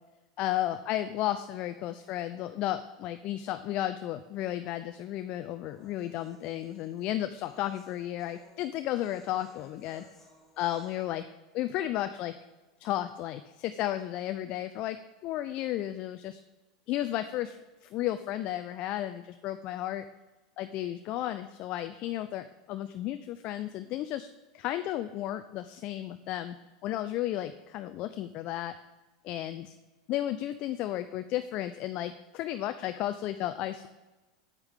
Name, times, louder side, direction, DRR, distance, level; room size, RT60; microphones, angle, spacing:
voice 1, 0.4-10.0 10.6-11.2 11.5-12.3 12.8-16.4 16.9-20.0 20.6-24.3 24.5-26.6 26.8-28.7 29.2-29.8 30.1-33.9, left 13 dB, 45° left, 10 dB, 0.4 m, -33 dB
sound 1, 4.6-11.1, left 3 dB, 10° left, 3.0 m, -60 dB
8.8 x 8.1 x 3.6 m, 1.1 s
hypercardioid pair, 95°, 3 cm